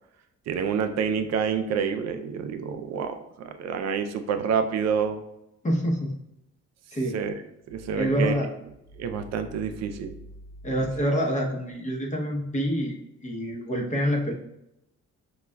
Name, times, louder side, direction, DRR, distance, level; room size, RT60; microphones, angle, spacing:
voice 1, 0.5-5.2 7.1-7.3 7.7-8.4 9.0-10.2, right 6 dB, 60° right, 8 dB, 0.4 m, -28 dB
voice 2, 5.6-6.1 6.9-7.2 8.0-8.5 10.6-13.0 13.2-14.3, equal, 25° left, 0 dB, 0.8 m, -26 dB
5.0 x 2.3 x 2.2 m, 0.84 s
cardioid pair, 90°, 30 cm